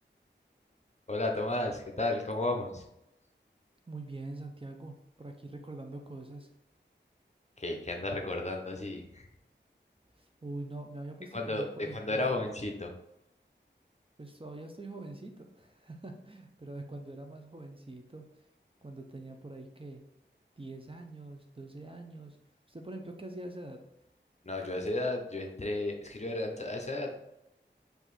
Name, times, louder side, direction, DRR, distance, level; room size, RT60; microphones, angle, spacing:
voice 1, 1.1-2.8 7.6-9.3 11.3-12.9 24.4-27.1, left 2 dB, 35° left, 2 dB, 0.7 m, -33 dB
voice 2, 3.9-6.5 10.2-12.4 14.2-18.3 18.8-20.0 20.6-22.4 22.7-23.8, right 2 dB, 30° right, 3 dB, 0.6 m, -44 dB
4.8 x 2.7 x 4.1 m, 0.83 s
wide cardioid pair, 50°, 20 cm